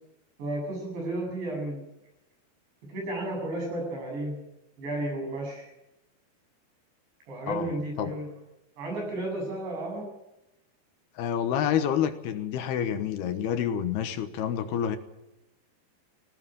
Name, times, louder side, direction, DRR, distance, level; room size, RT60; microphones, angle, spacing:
voice 1, 0.4-1.8 2.9-4.4 4.8-5.7 7.3-8.3 8.8-10.1, right 1 dB, 80° right, 1 dB, 10.5 m, -33 dB
voice 2, 7.5-8.1 11.2-15.0, left 9 dB, 75° left, 9 dB, 3.0 m, -28 dB
19.5 x 17.5 x 9.1 m, 0.91 s
omnidirectional pair, 5.0 m